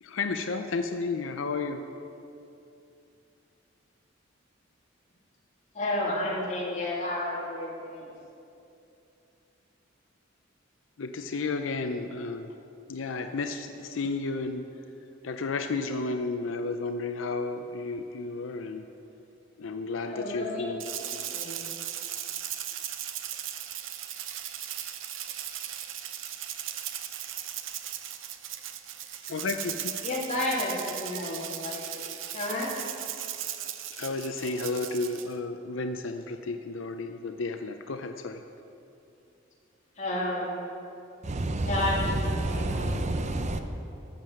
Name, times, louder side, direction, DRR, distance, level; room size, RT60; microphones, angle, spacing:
voice 1, 0.0-1.8 11.0-12.5 12.9-14.6 15.2-18.8 19.6-20.8 29.3-29.8 34.0-38.4, left 3 dB, 75° left, 7 dB, 0.6 m, -32 dB
voice 2, 5.7-8.1 20.0-21.7 30.0-32.7 40.0-40.6 41.6-43.0, left 1 dB, 40° left, -5 dB, 2.7 m, -32 dB
Rattle (instrument), 20.8-35.3, right 11 dB, 80° right, 0.7 m, -37 dB
voice 3, 41.2-43.6, right 1 dB, 35° right, 7 dB, 0.6 m, -29 dB
13.0 x 7.5 x 6.4 m, 2.7 s
head